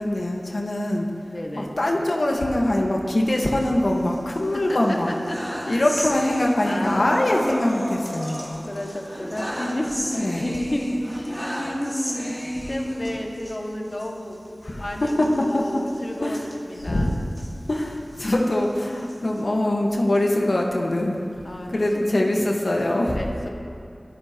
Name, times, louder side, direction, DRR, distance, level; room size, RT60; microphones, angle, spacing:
voice 1, 0.0-1.1 1.6-5.1 5.7-8.4 10.0-10.4 14.6-15.7 16.2-16.4 16.9-17.1 17.7-21.2 21.7-23.2, left 1 dB, 70° left, 0 dB, 1.5 m, -23 dB
voice 2, 1.3-1.8 4.5-5.4 5.6-5.9 6.6-7.5 8.2-8.3 8.7-14.4 14.8-17.2 21.3-22.1 23.1-23.5, left 1 dB, 45° left, 0 dB, 2.0 m, -32 dB
sound 1, 3.4-4.4 4.8-13.6 13.9-14.1 14.3-14.5 15.0-17.5 18.0-19.4, equal, ahead, 2.2 m, -33 dB
22.5 x 13.5 x 3.0 m, 2.5 s
wide cardioid pair, 45°, 0 cm